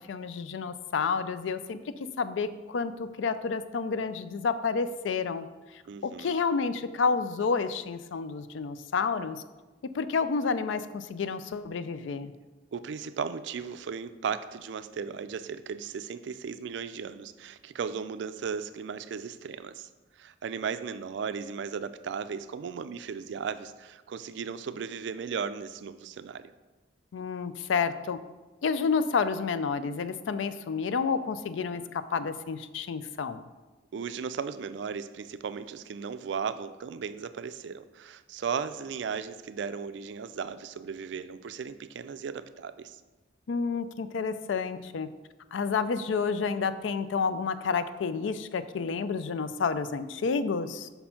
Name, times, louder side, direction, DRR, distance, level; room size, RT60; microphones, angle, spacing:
voice 1, 0.1-1.8 2.2-5.5 6.0-9.4 9.9-12.3 27.1-28.2 28.6-33.4 43.5-45.1 45.5-50.9, left 5 dB, 80° left, 12 dB, 0.4 m, -30 dB
voice 2, 5.9-6.4 12.7-26.5 33.9-43.0, right 6 dB, 65° right, 13 dB, 0.3 m, -36 dB
5.5 x 4.3 x 5.7 m, 1.2 s
head